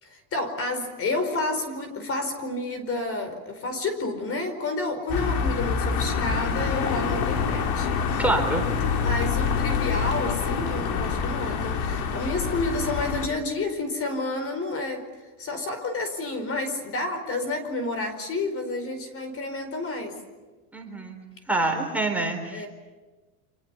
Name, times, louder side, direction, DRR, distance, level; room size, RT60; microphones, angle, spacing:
voice 1, 0.0-8.2 8.9-15.1 15.4-20.2 22.5-22.7, left 2 dB, 30° left, 9 dB, 4.8 m, -30 dB
sound 1, 5.1-13.3, left 6 dB, 55° left, 2.9 m, -26 dB
voice 2, 8.2-8.7 20.7-21.2 21.5-22.7, right 2 dB, 5° right, 1 dB, 3.7 m, -26 dB
29.5 x 26.0 x 7.1 m, 1.3 s
supercardioid pair, 130°, 46 cm